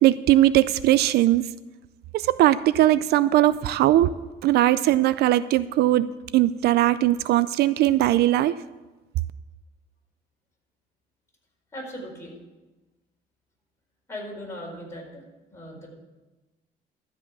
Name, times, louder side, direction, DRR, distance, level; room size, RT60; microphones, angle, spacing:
voice 1, 0.0-1.4 2.1-4.1 4.4-6.1 6.3-8.5, right 14 dB, 70° right, 16 dB, 0.4 m, -19 dB
voice 2, 11.7-12.4 14.1-15.2 15.5-15.9, equal, 15° left, -2 dB, 4.7 m, -38 dB
12.5 x 5.6 x 8.3 m, 1.1 s
cardioid pair, 110°, 17 cm